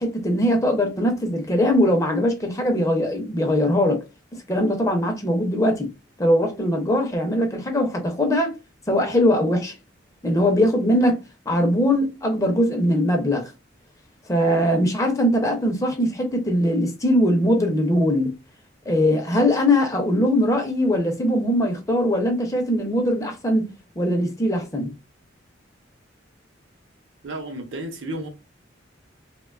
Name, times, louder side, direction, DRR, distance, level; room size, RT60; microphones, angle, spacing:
voice 1, 0.0-4.0 4.5-5.9 6.2-8.6 8.9-9.7 10.2-11.2 11.5-13.5 14.3-18.3 18.9-23.7 24.0-24.9, left 1 dB, 15° left, 0.4 m, -21 dB
voice 2, 27.2-28.3, right 1 dB, 75° right, 0.7 m, -32 dB
2.9 x 2.1 x 2.3 m
head